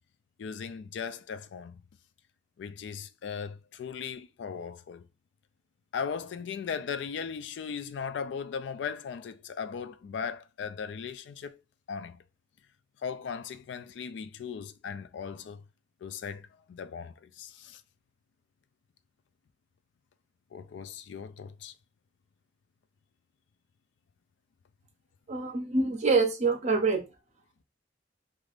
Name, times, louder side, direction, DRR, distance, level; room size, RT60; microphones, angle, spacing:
voice 1, 0.4-1.8 2.6-5.1 5.9-11.6 11.9-12.2 13.0-15.6 16.0-17.8 20.5-21.7, left 6 dB, 70° left, 0.3 m, -38 dB
voice 2, 25.3-27.0, right 4 dB, 40° right, 0.6 m, -25 dB
3.3 x 2.4 x 2.4 m
head